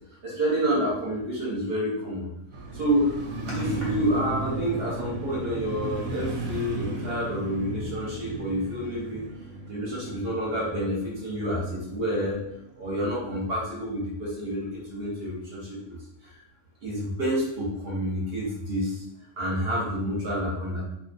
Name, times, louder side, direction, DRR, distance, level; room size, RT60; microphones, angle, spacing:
voice 1, 0.2-2.3 2.7-3.1 3.5-9.2 9.7-12.4 12.8-16.0 16.2-16.3 16.8-19.0 19.4-20.8, equal, 55° right, -5 dB, 0.8 m, -28 dB
Motorcycle, 2.5-12.6 13.0-13.1, right 2 dB, 80° right, 1.0 m, -35 dB
2.4 x 2.3 x 2.5 m, 0.81 s
omnidirectional pair, 1.4 m